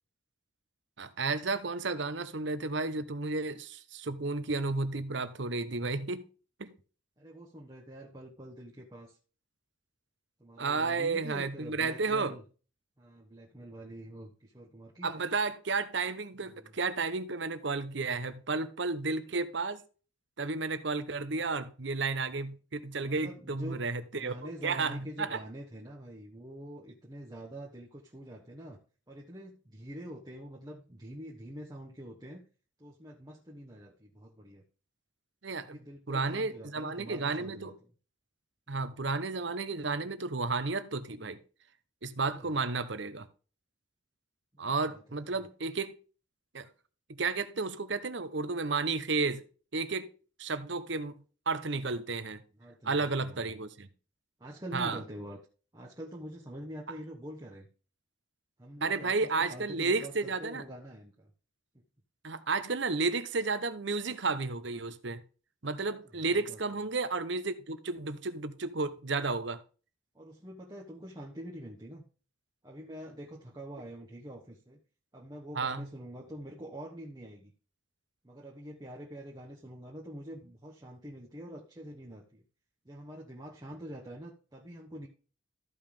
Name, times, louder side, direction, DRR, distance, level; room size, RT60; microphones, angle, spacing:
voice 1, 1.0-6.2 6.6-6.7 10.6-12.4 15.0-19.8 20.4-25.4 35.4-35.8 36.1-37.8 38.7-41.4 42.0-43.3 44.6-45.9 46.5-46.7 47.2-49.4 49.7-50.1 50.4-52.4 52.8-53.9 54.7-55.0 58.8-60.6 62.2-65.2 65.6-69.6 75.5-75.9, right 3 dB, 60° right, 0.9 m, -32 dB
voice 2, 7.2-9.2 10.4-12.4 13.0-15.1 16.4-16.8 21.3-21.4 23.0-23.8 24.1-28.8 29.1-32.4 32.8-34.6 35.7-37.7 38.7-39.0 42.1-42.6 44.5-45.3 52.6-53.6 54.4-55.4 55.7-57.7 58.6-61.3 66.1-66.6 70.1-72.0 72.6-74.8 75.1-77.5 78.2-82.4 82.8-85.1, equal, 20° right, 1.2 m, -46 dB
14.0 x 5.5 x 3.5 m
head